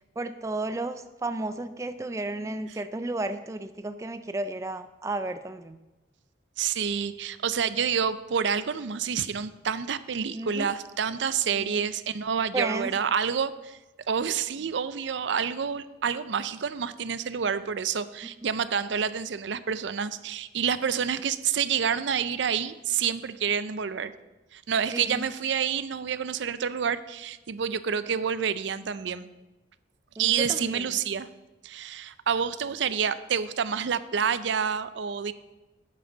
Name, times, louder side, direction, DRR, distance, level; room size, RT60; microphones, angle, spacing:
voice 1, 0.2-5.8 10.3-10.7 11.5-11.9 12.5-12.9 24.9-25.2 30.2-30.8, right 2 dB, 15° right, 10 dB, 0.3 m, -33 dB
voice 2, 6.6-13.8 14.1-24.1 24.5-29.3 30.2-31.3 31.6-35.3, right 7 dB, 75° right, 14 dB, 0.5 m, -28 dB
12.0 x 8.8 x 3.9 m, 1.1 s
head